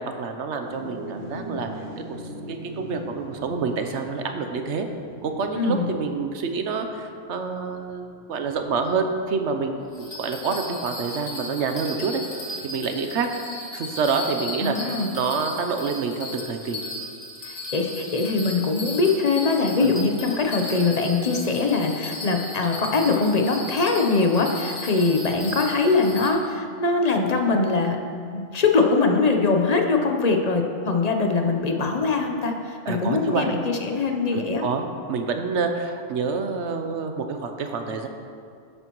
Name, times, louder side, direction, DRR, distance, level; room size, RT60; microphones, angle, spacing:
voice 1, 0.2-1.7 2.0-2.2 2.5-4.9 5.2-12.2 12.6-13.3 13.7-16.8 19.8-19.9 32.9-33.6 34.3-38.1, right 5 dB, 70° right, 5 dB, 1.0 m, -27 dB
sound 1, 0.6-10.2, equal, 40° right, 2.1 m, -41 dB
voice 2, 5.6-5.9 14.6-15.1 17.5-28.0 28.3-34.6, left 3 dB, 35° left, 3 dB, 0.8 m, -22 dB
Bell, 9.9-26.3, left 1 dB, 70° left, 1.8 m, -36 dB
12.0 x 8.8 x 3.0 m, 2.3 s
omnidirectional pair, 1.3 m